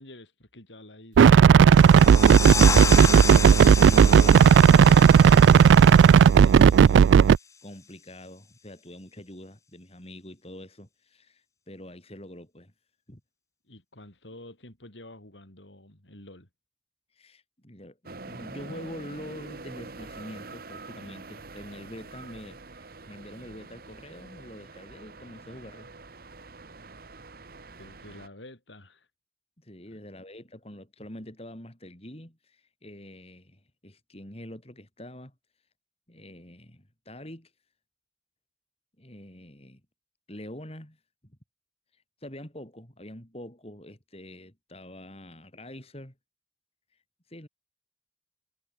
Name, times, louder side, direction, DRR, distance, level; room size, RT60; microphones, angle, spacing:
voice 1, 0.0-2.1 13.7-16.5 27.8-29.1 29.9-30.0, left 1 dB, 85° left, 6.6 m, -49 dB
sound 1, 1.2-7.4, right 7 dB, 90° right, 0.3 m, -14 dB
sound 2, 1.7-7.1, left 6 dB, 15° left, 0.4 m, -31 dB
voice 2, 3.9-7.1 7.6-12.7 13.1-13.2 17.2-18.0 18.2-25.9 29.6-35.3 36.1-37.5 39.0-39.8 40.3-41.0 41.2-41.4 42.2-46.1 47.3-47.5, left 1 dB, 35° left, 6.0 m, -44 dB
sound 3, 18.1-28.3, right 3 dB, 55° right, 1.4 m, -45 dB
head